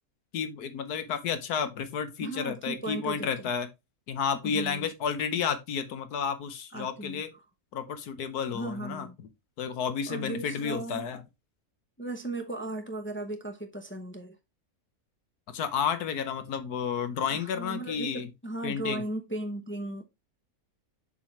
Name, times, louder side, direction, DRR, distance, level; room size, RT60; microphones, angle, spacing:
voice 1, 0.3-3.7 4.1-7.3 7.7-9.1 9.6-11.2 15.5-18.3 18.6-19.0, left 7 dB, 85° left, 1.5 m, -31 dB
voice 2, 2.2-3.5 4.4-4.9 6.7-7.2 8.5-9.2 10.1-11.1 12.0-14.4 17.3-20.0, right 2 dB, 10° left, 0.6 m, -36 dB
7.2 x 4.6 x 3.3 m
omnidirectional pair, 1.6 m